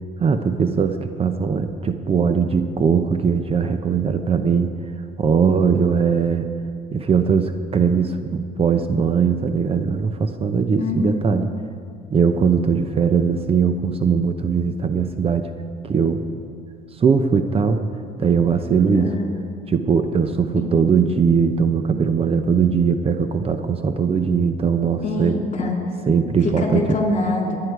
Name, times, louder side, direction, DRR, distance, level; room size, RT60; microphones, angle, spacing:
voice 1, 0.2-4.7 5.2-6.5 6.9-11.5 12.1-15.5 15.8-16.2 17.0-17.8 18.2-19.1 19.7-25.4 26.1-26.9, right 6 dB, 35° right, 8 dB, 0.8 m, -20 dB
voice 2, 10.8-11.2 19.0-19.3 20.6-20.7 25.0-25.8 26.6-27.6, left 2 dB, 45° left, 1 dB, 3.0 m, -24 dB
23.0 x 9.8 x 4.8 m, 2.4 s
cardioid pair, 110°, 17 cm